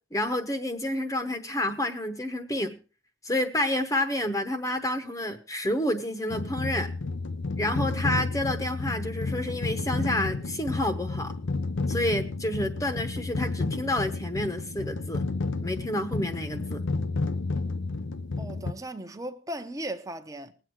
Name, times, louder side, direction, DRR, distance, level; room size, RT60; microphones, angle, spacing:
voice 1, 0.1-2.8 3.2-6.9 7.6-11.3 11.9-15.2 15.6-16.8, left 1 dB, 15° left, 1.0 m, -29 dB
sound 1, 6.3-18.7, left 3 dB, 90° left, 0.8 m, -31 dB
voice 2, 18.4-20.5, right 1 dB, 20° right, 0.9 m, -37 dB
20.0 x 8.0 x 4.6 m
head